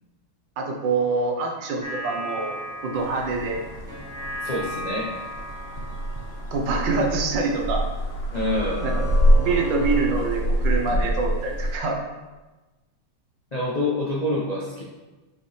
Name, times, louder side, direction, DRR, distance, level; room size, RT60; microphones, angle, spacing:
voice 1, 0.6-3.6 6.5-7.8 8.8-9.1 9.4-12.0, right 3 dB, 65° right, 2 dB, 1.4 m, -25 dB
sound 1, 1.8-8.0 8.3-10.9, equal, 20° right, 0.5 m, -36 dB
sound 2, 3.0-11.8, equal, 45° left, 0.9 m, -26 dB
voice 2, 4.4-5.1 8.3-8.9 13.5-14.8, left 1 dB, 65° left, -6 dB, 0.4 m, -26 dB
6.4 x 5.1 x 3.2 m, 1.2 s
omnidirectional pair, 2.2 m